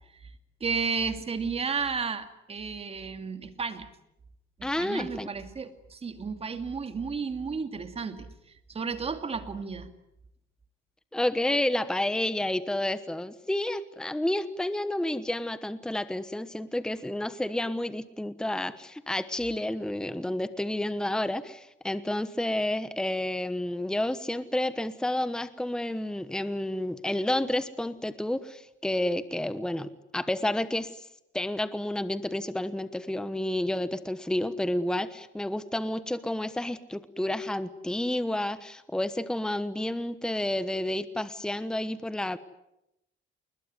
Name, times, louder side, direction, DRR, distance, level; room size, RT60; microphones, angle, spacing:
voice 1, 0.6-3.9 4.6-9.9, right 5 dB, 30° right, 8 dB, 2.4 m, -33 dB
voice 2, 4.6-5.3 11.1-31.1 31.3-42.4, left 1 dB, 5° left, 13 dB, 1.1 m, -30 dB
29.5 x 21.0 x 9.6 m, 0.87 s
cardioid pair, 130°, 20 cm